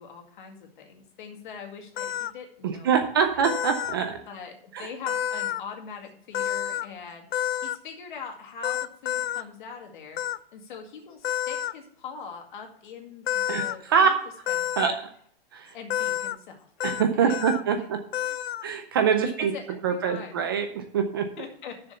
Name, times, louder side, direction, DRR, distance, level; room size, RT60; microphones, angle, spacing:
voice 1, 0.0-3.1 3.4-3.5 4.3-7.3 7.6-10.2 10.5-14.2 14.5-15.0 15.7-16.7 17.1-17.4 17.7-17.8 19.2-20.4 21.4-21.9, left 6 dB, 50° left, 3 dB, 2.1 m, -42 dB
sound 1, 2.0-2.3 3.4-4.0 5.1-5.6 6.3-6.9 7.3-7.8 8.6-9.4 10.2-10.4 11.2-11.7 13.3-13.7 14.5-14.9 15.9-16.4 16.8-17.0 17.3-17.6 18.1-18.6, left 11 dB, 70° left, 0.6 m, -29 dB
voice 2, 2.6-4.2 4.7-4.9 13.5-14.2 14.8-14.9 15.5-15.7 16.8-18.0 18.6-19.5 19.8-21.3, right 7 dB, 25° right, 7 dB, 0.4 m, -24 dB
6.8 x 6.8 x 6.8 m, 0.63 s
hypercardioid pair, 170°, 31 cm